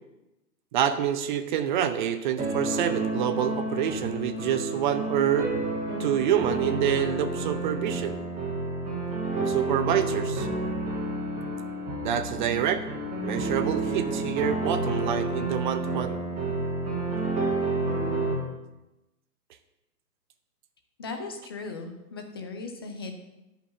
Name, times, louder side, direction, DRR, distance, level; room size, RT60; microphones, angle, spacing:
voice 1, 0.7-5.5 6.0-8.2 9.3-10.5 12.0-12.8 13.2-16.2, right 9 dB, 30° right, 9 dB, 0.6 m, -27 dB
sound 1, 2.4-18.4, right 2 dB, 15° right, 2.4 m, -30 dB
voice 2, 21.0-23.1, left 3 dB, 15° left, 4 dB, 0.4 m, -37 dB
9.7 x 5.5 x 6.7 m, 0.98 s
hypercardioid pair, 130°, 48 cm